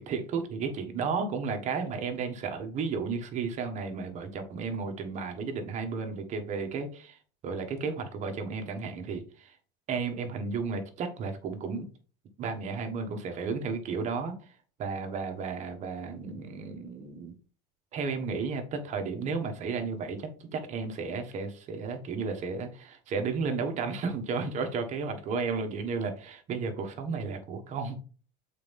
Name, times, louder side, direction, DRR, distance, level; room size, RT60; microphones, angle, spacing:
voice 1, 0.0-9.6 9.9-11.9 12.4-14.5 14.8-17.3 17.9-28.0, right 5 dB, 40° right, 5 dB, 1.4 m, -33 dB
7.5 x 4.2 x 3.7 m, 0.38 s
cardioid pair, 140°, 18 cm